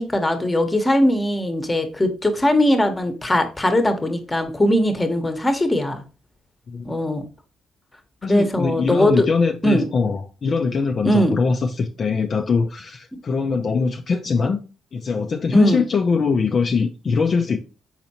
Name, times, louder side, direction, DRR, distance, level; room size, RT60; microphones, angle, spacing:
voice 1, 0.0-6.0 6.8-7.2 8.2-9.3 9.6-9.9 11.0-11.4 15.5-15.8, equal, 20° left, 1.0 m, -20 dB
voice 2, 8.2-14.6 14.9-17.6, left 5 dB, 50° left, 0.5 m, -22 dB
4.3 x 4.0 x 2.8 m
supercardioid pair, 65°, 0 cm